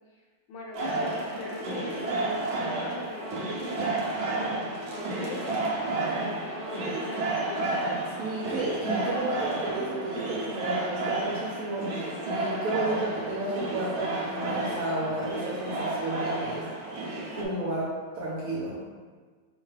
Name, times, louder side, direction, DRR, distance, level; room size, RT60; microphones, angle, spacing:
voice 1, 0.5-4.0 4.3-7.7, left 2 dB, 75° left, -2 dB, 1.3 m, -41 dB
sound 1, 0.7-17.4, right 2 dB, 85° right, 0.6 m, -31 dB
voice 2, 8.2-16.7 17.4-18.8, right 2 dB, 65° right, -5 dB, 0.9 m, -32 dB
4.6 x 2.2 x 3.2 m, 1.5 s
omnidirectional pair, 1.9 m